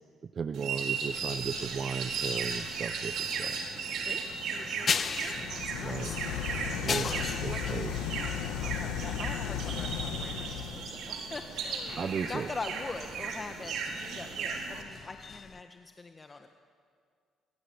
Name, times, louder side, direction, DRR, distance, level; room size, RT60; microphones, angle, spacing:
voice 1, 0.2-3.6 5.8-6.1 6.8-8.0 12.0-12.5, right 6 dB, 50° right, 13 dB, 0.8 m, -36 dB
sound 1, 0.5-14.8, right 5 dB, 70° right, 4.3 m, -36 dB
sound 2, 1.1-15.6, left 6 dB, 50° left, 1.1 m, -40 dB
voice 2, 4.5-6.2 6.6-6.7 7.5-7.8 8.2-16.5, left 3 dB, 30° left, 6 dB, 1.7 m, -43 dB
sound 3, 5.2-11.0, left 10 dB, 80° left, 1.7 m, -35 dB
26.0 x 23.0 x 8.2 m, 2.1 s
supercardioid pair, 60°, 0 cm